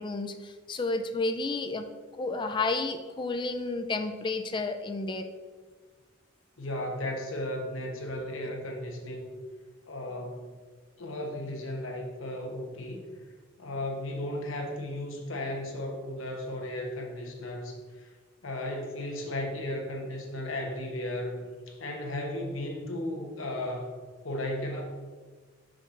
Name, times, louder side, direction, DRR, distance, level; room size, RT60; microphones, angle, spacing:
voice 1, 0.0-1.9 2.2-5.3, left 3 dB, 25° left, 7 dB, 0.4 m, -31 dB
voice 2, 6.6-9.3 9.9-10.6 11.0-13.0 13.6-18.1 18.4-24.0 24.2-24.8, left 1 dB, 90° left, 1 dB, 1.1 m, -35 dB
5.8 x 5.1 x 3.8 m, 1.5 s
head